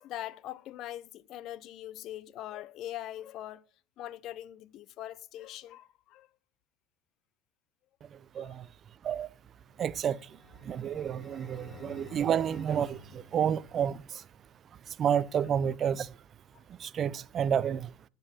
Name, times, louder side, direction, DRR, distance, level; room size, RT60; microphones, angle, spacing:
voice 1, 0.0-3.6 4.0-6.3 8.4-8.7 11.7-11.9, left 13 dB, 55° left, 0.6 m, -42 dB
voice 2, 8.3-8.7 9.0-9.3 9.8-10.2 10.6-14.2 15.0-16.1 16.8-17.9, right 8 dB, 40° right, 0.4 m, -30 dB
sound 1, 9.5-14.1, left 1 dB, 15° left, 2.8 m, -51 dB
9.5 x 5.3 x 5.6 m
hypercardioid pair, 70°, 0 cm